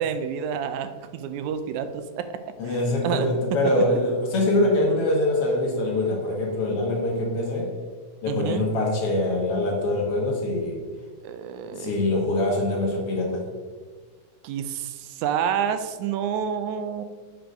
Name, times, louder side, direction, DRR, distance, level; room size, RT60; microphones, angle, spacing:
voice 1, 0.0-2.4 2.7-2.8 3.0-3.3 8.3-8.6 11.2-11.9 14.4-17.0, right 8 dB, 80° right, 10 dB, 1.9 m, -28 dB
voice 2, 2.6-7.8 8.2-10.8 11.7-13.4, left 1 dB, 55° left, -1 dB, 2.1 m, -24 dB
7.9 x 4.8 x 5.2 m, 1.4 s
omnidirectional pair, 3.3 m